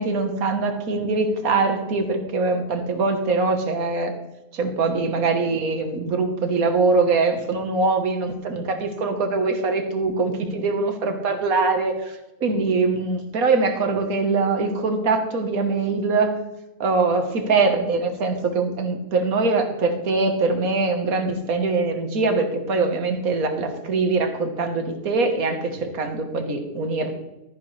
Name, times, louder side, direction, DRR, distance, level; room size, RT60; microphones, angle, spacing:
voice 1, 0.0-4.1 4.5-16.4 16.8-27.1, right 3 dB, 85° right, 5 dB, 1.8 m, -23 dB
13.5 x 10.5 x 3.3 m, 0.96 s
omnidirectional pair, 1.5 m